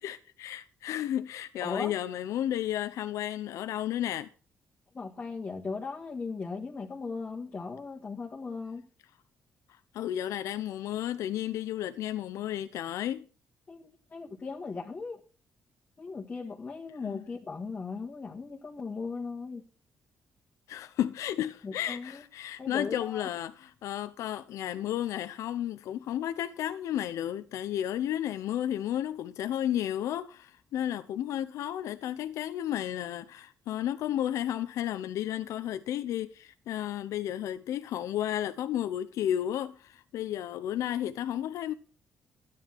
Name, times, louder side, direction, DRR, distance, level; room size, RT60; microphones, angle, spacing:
voice 1, 0.0-4.3 9.9-13.3 17.0-17.3 20.7-41.7, left 11 dB, 90° left, 0.7 m, -33 dB
voice 2, 1.6-1.9 4.9-8.9 13.7-15.2 16.0-19.6 21.6-22.2 22.6-23.3, left 4 dB, 30° left, 1.9 m, -38 dB
13.0 x 9.5 x 6.0 m
cardioid pair, 105°, 5 cm